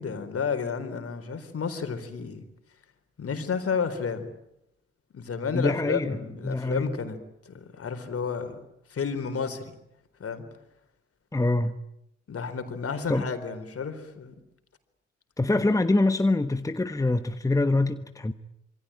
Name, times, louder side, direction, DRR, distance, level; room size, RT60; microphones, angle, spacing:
voice 1, 0.0-2.4 3.2-4.3 5.1-7.2 7.4-8.6 8.9-9.7 10.2-10.4 12.3-14.3, left 6 dB, 40° left, 9 dB, 4.2 m, -31 dB
voice 2, 5.5-7.0 11.3-11.7 13.1-13.3 15.4-18.3, left 2 dB, 10° left, 10 dB, 1.3 m, -25 dB
27.0 x 24.0 x 8.9 m, 0.80 s
figure-of-eight pair, 45°, 34 cm